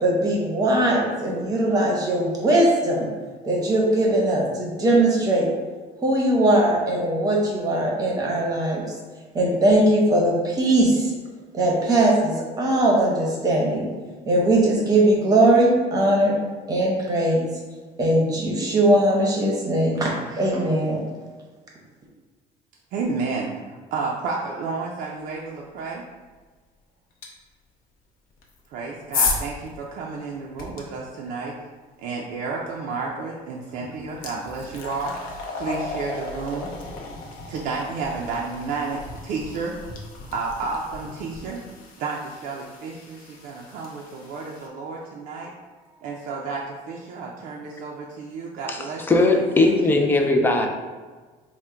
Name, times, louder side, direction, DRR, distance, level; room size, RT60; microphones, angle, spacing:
voice 1, 0.0-3.1 3.4-5.5 6.0-8.8 9.3-11.1 11.5-13.9 14.3-16.4 16.7-17.5 18.0-21.0, right 1 dB, 25° right, -2 dB, 0.8 m, -20 dB
voice 2, 22.9-26.1 28.7-31.6 32.0-36.7 37.5-39.8 40.3-41.6 42.0-45.5 46.0-50.0, right 4 dB, 60° right, -2 dB, 0.4 m, -31 dB
sound 1, 27.2-27.3 28.4-30.8 33.1-33.3 33.7-44.7, left 4 dB, 65° left, 0.7 m, -34 dB
voice 3, 49.1-50.7, left 2 dB, 15° left, 3 dB, 0.3 m, -18 dB
3.6 x 2.1 x 4.3 m, 1.4 s
cardioid pair, 165°, 16 cm